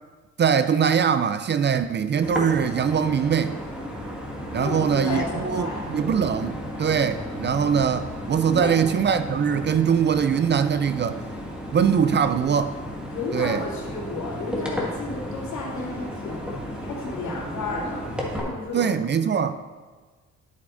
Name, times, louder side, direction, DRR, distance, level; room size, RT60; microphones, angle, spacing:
voice 1, 0.4-3.6 4.5-11.2 11.7-12.8 13.3-13.6 18.7-19.5, right 7 dB, 35° right, 0.4 m, -22 dB
sound 1, 2.2-18.4, equal, 5° right, 1.7 m, -34 dB
voice 2, 4.5-5.8 8.5-8.7 13.1-16.4 16.8-18.9, left 3 dB, 70° left, 2.7 m, -32 dB
11.0 x 8.4 x 2.6 m
cardioid pair, 90°, 30 cm